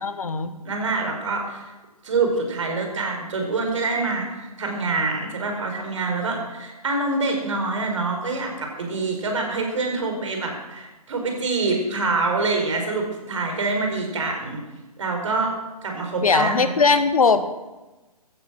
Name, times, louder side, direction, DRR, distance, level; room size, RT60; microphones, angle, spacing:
voice 1, 0.0-0.5 16.2-17.4, left 4 dB, 65° left, 11 dB, 1.3 m, -19 dB
voice 2, 0.6-1.6 2.0-14.6 15.0-15.5 15.8-16.7, right 3 dB, 50° right, 3 dB, 4.6 m, -25 dB
15.0 x 11.5 x 6.2 m, 1.1 s
figure-of-eight pair, 135°, 20 cm